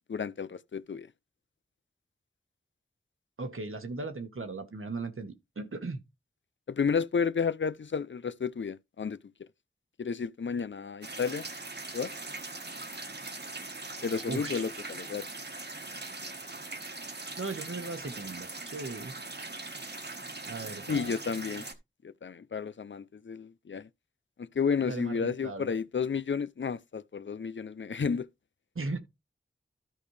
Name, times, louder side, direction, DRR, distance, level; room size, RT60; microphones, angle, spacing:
voice 1, 0.1-1.1 6.7-9.2 10.0-11.5 11.9-12.1 14.0-15.2 20.9-21.7 22.2-23.9 24.4-28.3, left 6 dB, 65° left, 0.5 m, -32 dB
voice 2, 3.4-6.0 14.3-14.6 17.4-19.1 20.4-21.1 24.9-25.7 28.7-29.0, right 3 dB, 80° right, 1.4 m, -37 dB
sound 1, 11.0-21.7, right 2 dB, 55° right, 1.3 m, -41 dB
13.5 x 5.2 x 3.3 m
wide cardioid pair, 50°, 21 cm